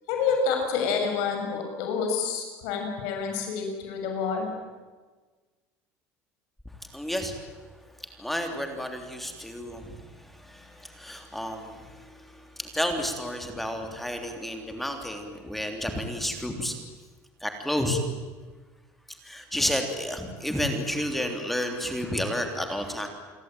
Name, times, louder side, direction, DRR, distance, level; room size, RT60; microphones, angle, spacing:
voice 1, 0.1-4.5, left 5 dB, 70° left, 2 dB, 6.8 m, -28 dB
voice 2, 6.9-7.3 8.2-10.0 10.4-12.0 12.6-16.7 17.4-18.0 19.2-23.1, equal, ahead, 4 dB, 3.1 m, -31 dB
28.0 x 23.0 x 9.1 m, 1.3 s
cardioid pair, 165°, 6 cm